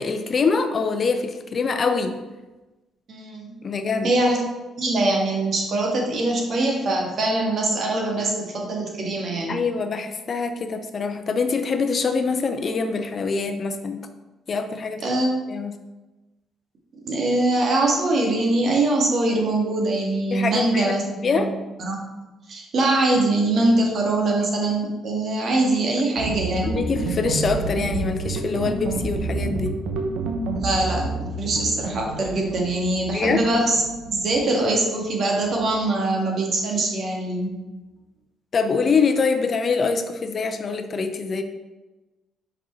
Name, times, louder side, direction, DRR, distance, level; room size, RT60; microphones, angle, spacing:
voice 1, 0.0-2.2 3.6-4.1 9.5-14.0 14.5-15.0 15.5-15.8 20.3-21.5 26.6-29.8 33.1-33.4 38.5-41.4, left 4 dB, 45° left, 8 dB, 0.6 m, -24 dB
voice 2, 3.1-3.5 4.0-4.4 4.8-9.6 15.0-15.6 17.0-21.0 21.3-21.5 21.8-26.7 30.6-37.6, right 2 dB, 60° right, 0 dB, 1.7 m, -23 dB
sound 1, 26.2-35.6, right 3 dB, 85° right, 0.8 m, -29 dB
5.4 x 5.0 x 4.3 m, 1.1 s
cardioid pair, 80°, 0 cm